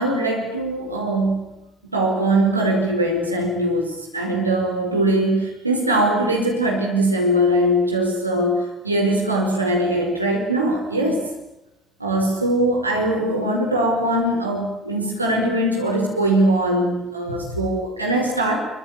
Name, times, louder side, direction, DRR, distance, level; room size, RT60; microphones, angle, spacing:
voice 1, 0.0-1.6 1.9-11.2 12.0-18.6, right 1 dB, 85° right, 0 dB, 5.2 m, -21 dB
26.0 x 24.5 x 8.8 m, 0.89 s
figure-of-eight pair, 50°, 0 cm